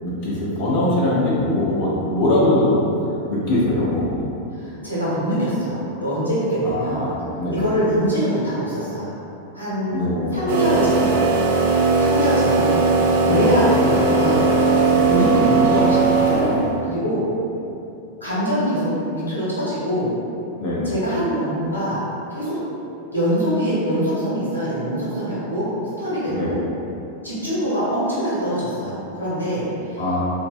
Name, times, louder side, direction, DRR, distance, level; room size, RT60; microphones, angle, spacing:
voice 1, 0.0-2.8 3.3-4.3 6.6-7.6 9.9-10.4 13.2-13.5 14.9-15.1 20.6-20.9 26.3-26.5 30.0-30.2, left 1 dB, 45° left, -7 dB, 0.6 m, -22 dB
voice 2, 4.5-7.2 7.5-9.2 9.5-11.2 11.9-17.3 18.2-20.2 20.8-22.0 22.3-22.6 23.1-25.7 26.0-26.6 27.2-30.0, equal, 80° left, -10 dB, 0.9 m, -24 dB
sound 1, 10.5-16.8, right 3 dB, 55° right, 0.4 m, -18 dB
3.3 x 2.1 x 2.4 m, 2.7 s
figure-of-eight pair, 90°, 0 cm